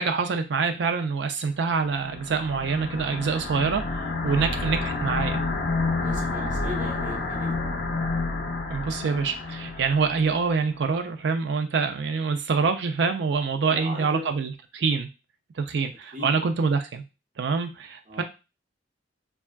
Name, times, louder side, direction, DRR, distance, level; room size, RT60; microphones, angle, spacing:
voice 1, 0.0-3.8 4.2-5.4 8.7-15.1 15.6-17.0 17.4-18.2, right 5 dB, 65° right, 7 dB, 0.4 m, -25 dB
sound 1, 1.8-10.4, left 3 dB, 60° left, 0.6 m, -29 dB
voice 2, 6.0-7.6 9.6-9.7 13.7-14.3 16.1-16.3 18.1-18.2, left 1 dB, 45° right, -2 dB, 0.9 m, -37 dB
3.4 x 2.3 x 2.2 m, 0.28 s
head